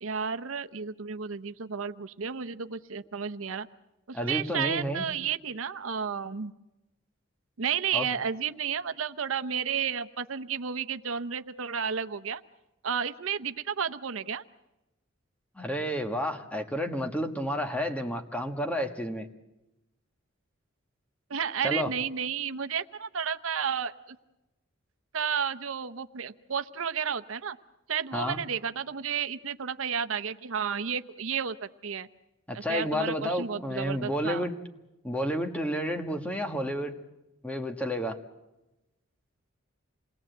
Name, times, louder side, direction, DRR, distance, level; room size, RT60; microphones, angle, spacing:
voice 1, 0.0-3.7 4.1-6.5 7.6-12.4 12.8-14.4 21.3-24.2 25.1-27.6 27.9-31.6 31.8-32.1 32.7-34.5, right 7 dB, 85° right, 10 dB, 0.8 m, -32 dB
voice 2, 4.1-5.1 7.9-8.1 15.5-19.3 21.6-21.9 28.1-28.4 32.5-34.5 35.0-37.0 37.4-38.2, equal, 5° left, 5 dB, 1.4 m, -31 dB
27.5 x 20.0 x 7.9 m, 0.98 s
head